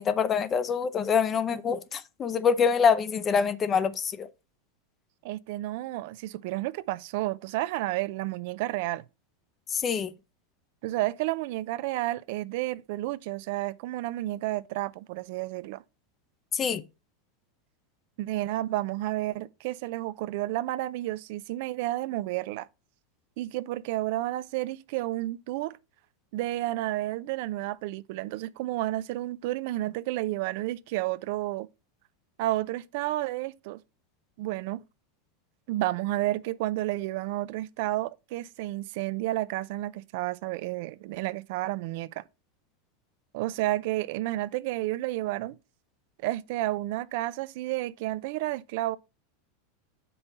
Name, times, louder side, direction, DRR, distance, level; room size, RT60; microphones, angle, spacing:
voice 1, 0.0-4.3 9.7-10.1 16.5-16.8, left 6 dB, 25° left, 0.6 m, -25 dB
voice 2, 5.2-9.0 10.8-15.8 18.2-22.7 23.4-25.8 26.3-31.7 32.4-33.8 34.4-34.8 35.7-42.2 43.3-45.6 46.2-49.0, right 16 dB, 60° right, 0.4 m, -31 dB
6.8 x 5.4 x 4.0 m
supercardioid pair, 145°, 0 cm